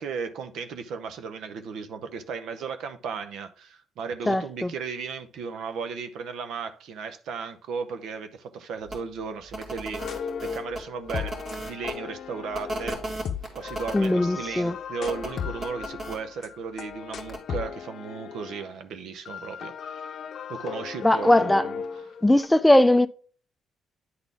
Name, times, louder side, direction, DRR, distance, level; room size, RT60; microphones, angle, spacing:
voice 1, 0.0-13.0 13.5-20.1 20.5-21.8, right 5 dB, 80° right, 0.7 m, -35 dB
voice 2, 4.3-4.7 13.9-14.8 21.0-21.7 22.2-23.1, left 1 dB, 10° left, 0.4 m, -19 dB
sound 1, 8.9-9.0 9.5-11.9 12.5-14.1 15.0-16.2 17.2-17.4, right 1 dB, 50° right, 2.0 m, -35 dB
sound 2, 10.0-18.7 19.3-22.5, left 7 dB, 65° left, 0.6 m, -36 dB
9.4 x 4.1 x 3.4 m
cardioid pair, 90°, 0 cm